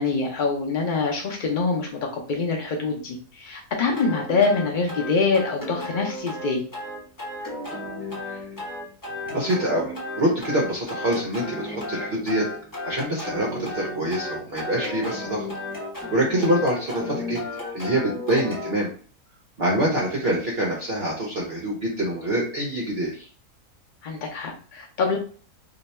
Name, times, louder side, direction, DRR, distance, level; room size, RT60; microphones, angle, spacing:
voice 1, 0.0-6.6 16.3-16.5 24.0-25.2, left 4 dB, 75° left, 0 dB, 0.4 m, -25 dB
sound 1, 4.0-18.7, left 1 dB, 20° left, 0.7 m, -34 dB
voice 2, 9.3-12.5 12.8-15.5 16.1-17.4 17.7-18.9 19.6-23.3, right 1 dB, 50° right, -3 dB, 0.8 m, -25 dB
2.8 x 2.2 x 4.0 m, 0.41 s
omnidirectional pair, 1.6 m